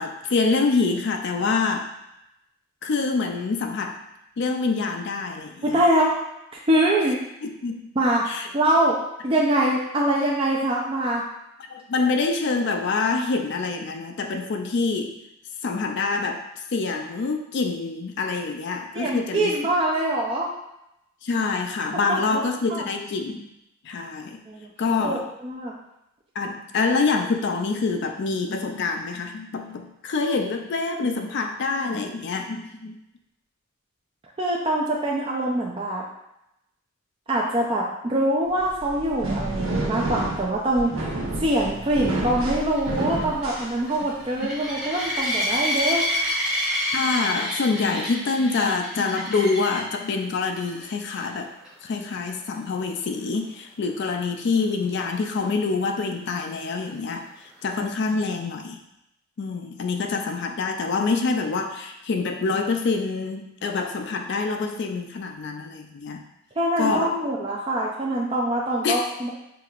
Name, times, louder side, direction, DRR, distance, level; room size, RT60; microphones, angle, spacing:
voice 1, 0.0-1.9 2.8-4.0 4.4-5.7 7.4-7.9 8.3-8.5 11.7-15.2 15.6-16.4 16.7-19.5 21.2-23.5 23.8-24.4 24.8-25.2 26.4-33.0 46.9-51.5 51.8-57.3 57.6-58.8 59.4-66.2 66.8-67.1 68.8-69.0, left 4 dB, 55° left, 4 dB, 0.4 m, -26 dB
voice 2, 5.6-6.2 6.7-7.2 8.0-8.2 8.5-9.0 9.2-11.2 18.9-20.5 22.1-22.4 22.7-22.8 24.5-24.7 25.0-25.7 34.4-36.0 37.3-46.0 66.6-69.3, right 1 dB, 25° right, -3 dB, 0.4 m, -24 dB
sound 1, 38.6-44.3, right 1 dB, 85° right, 0.9 m, -29 dB
sound 2, 42.0-50.0 50.6-50.9 51.2-51.3 51.6-51.7 55.3-55.4, equal, 5° right, 0.8 m, -28 dB
5.8 x 2.8 x 2.4 m, 0.85 s
head